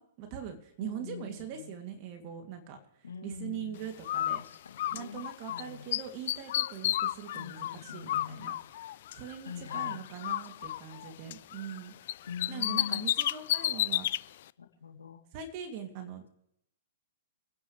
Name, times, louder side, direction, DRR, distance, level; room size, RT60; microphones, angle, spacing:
voice 1, 0.0-4.4 4.9-8.6 9.1-11.9 12.5-14.1 15.3-16.2, right 8 dB, 40° right, 5 dB, 2.6 m, -42 dB
voice 2, 0.8-1.8 3.0-5.9 7.3-8.6 9.4-10.0 12.3-13.1 14.6-15.2, left 6 dB, 90° left, 3 dB, 3.0 m, -44 dB
Bird, 4.0-5.6 5.9-9.4 9.7-11.8 12.1-14.2, left 13 dB, 55° left, 0.5 m, -32 dB
29.0 x 10.0 x 3.3 m, 0.76 s
hypercardioid pair, 130°, 0 cm